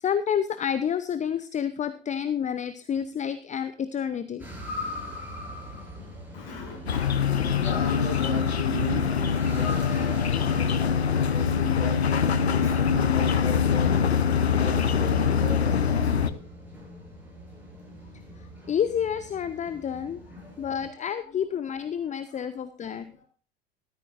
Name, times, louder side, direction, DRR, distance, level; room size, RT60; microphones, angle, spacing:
voice 1, 0.0-4.4 18.7-20.2 20.6-23.0, left 8 dB, 25° left, 13 dB, 0.8 m, -29 dB
sound 1, 4.4-20.9, left 2 dB, 5° right, 7.2 m, -42 dB
voice 2, 6.3-10.9 11.3-16.5 18.4-18.5 20.4-21.3 22.3-22.4 22.9-23.3, left 1 dB, 55° left, 2 dB, 7.0 m, -38 dB
sound 2, 6.9-16.3, left 7 dB, 80° left, 0.8 m, -24 dB
13.5 x 13.0 x 2.6 m, 0.38 s
figure-of-eight pair, 70°, 31 cm